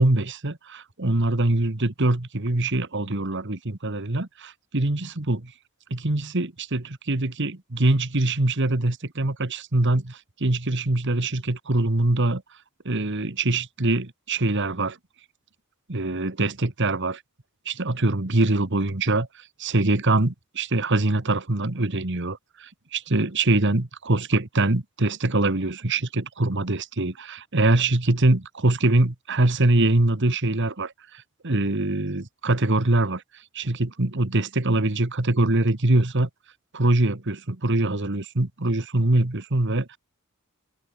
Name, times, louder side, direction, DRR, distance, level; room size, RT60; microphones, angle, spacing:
voice 1, 0.0-5.5 5.9-12.4 12.8-15.0 15.9-17.2 17.6-19.3 19.6-33.2 33.5-36.3 36.7-40.0, right 2 dB, 55° right, 1.6 m, -23 dB
head